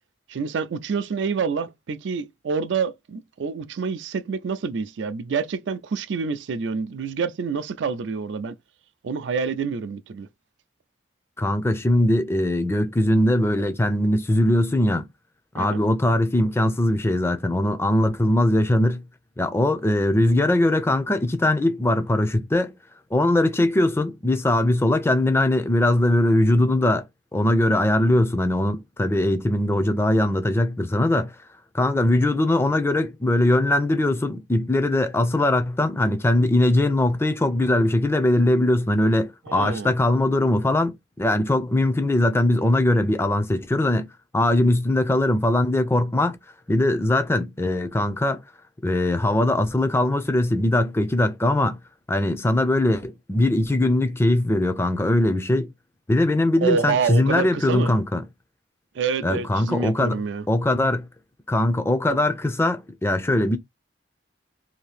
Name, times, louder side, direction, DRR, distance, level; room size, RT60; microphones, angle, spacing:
voice 1, 0.3-8.6 9.0-10.3 15.6-15.8 39.5-39.9 56.6-57.9 58.9-60.5, right 5 dB, 80° right, 0.4 m, -27 dB
voice 2, 11.4-15.1 15.5-19.0 19.4-22.7 23.1-27.0 27.3-31.3 31.7-44.1 44.3-46.4 46.7-48.4 48.8-51.8 52.1-55.7 56.1-58.2 59.2-60.2 60.5-61.1 61.5-63.6, left 1 dB, 15° left, 0.4 m, -21 dB
2.8 x 2.6 x 3.3 m
head